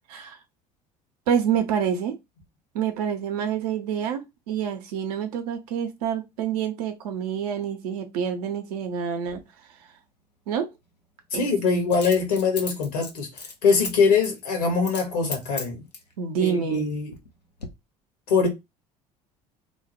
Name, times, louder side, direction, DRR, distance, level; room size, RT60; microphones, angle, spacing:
voice 1, 1.3-2.2 2.7-9.4 10.5-10.7 11.3-11.5 16.2-16.8, right 8 dB, 65° right, 0.6 m, -27 dB
Coin (dropping), 9.2-9.4 11.9-13.9 14.2-14.4 14.8-15.1 15.3-16.1 16.7-17.3 17.6-17.7, left 4 dB, 90° left, 0.5 m, -36 dB
voice 2, 11.3-15.8 16.4-17.1 18.3-18.5, left 5 dB, 70° left, 1.2 m, -23 dB
2.8 x 2.1 x 2.9 m
figure-of-eight pair, 65°, 20 cm